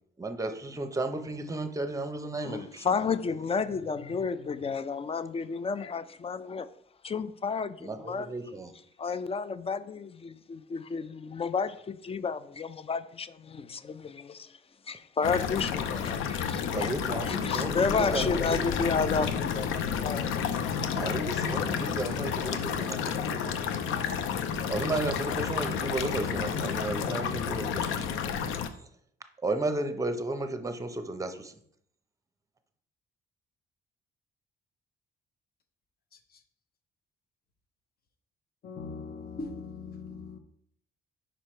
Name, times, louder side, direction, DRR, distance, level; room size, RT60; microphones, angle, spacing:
voice 1, 0.2-3.0 7.8-8.7 16.7-19.1 20.9-23.6 24.1-24.3 24.7-28.2 29.4-31.6, right 2 dB, 15° right, 0.7 m, -34 dB
voice 2, 2.4-6.7 7.0-8.3 9.0-14.6 14.9-16.9 17.2-19.7 20.0-20.9, left 5 dB, 30° left, 0.4 m, -32 dB
sound 1, 15.2-28.7, left 7 dB, 90° left, 0.6 m, -31 dB
voice 3, 38.6-40.4, left 4 dB, 50° left, 0.9 m, -40 dB
5.1 x 4.6 x 4.4 m
cardioid pair, 90°, 20 cm